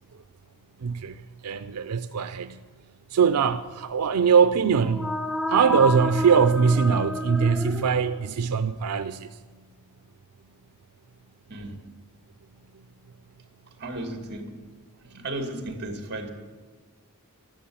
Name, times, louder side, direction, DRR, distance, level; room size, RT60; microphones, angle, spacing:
voice 1, 0.8-2.6 3.1-5.1 5.5-9.3 15.1-15.2, right 6 dB, 90° right, 0.5 m, -22 dB
sound 1, 4.7-8.5, left 1 dB, ahead, 0.4 m, -31 dB
voice 2, 11.5-11.8 13.8-14.6 15.0-16.3, right 1 dB, 50° right, 2.3 m, -34 dB
12.5 x 12.5 x 8.7 m
head